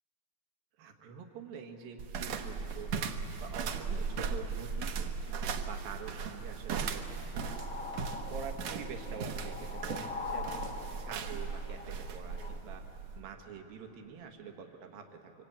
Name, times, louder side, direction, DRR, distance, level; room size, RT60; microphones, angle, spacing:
voice 1, 0.8-2.9 3.4-5.1 5.7-7.6 8.3-12.8 13.1-15.3, right 6 dB, 80° right, 4 dB, 3.2 m, -46 dB
sound 1, 2.0-13.2, right 5 dB, 65° right, 1.9 m, -37 dB
sound 2, 7.3-12.6, left 4 dB, 45° left, 1.2 m, -43 dB
25.5 x 24.5 x 8.7 m, 3.0 s
omnidirectional pair, 4.1 m